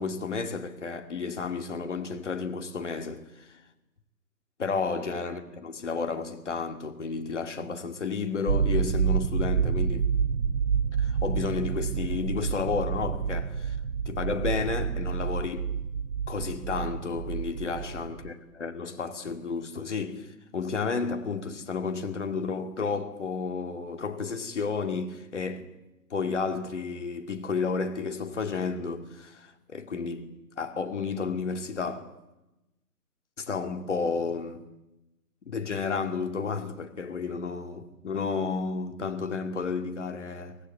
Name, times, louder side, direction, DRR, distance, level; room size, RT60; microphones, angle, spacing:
voice 1, 0.0-3.6 4.6-10.1 11.0-13.8 14.1-15.8 16.3-25.7 26.1-32.1 33.4-34.7 35.5-40.6, left 5 dB, 45° left, 2.4 m, -32 dB
sound 1, 8.5-18.3, right 6 dB, 60° right, 1.1 m, -28 dB
24.5 x 18.5 x 9.5 m
figure-of-eight pair, 155°, 49 cm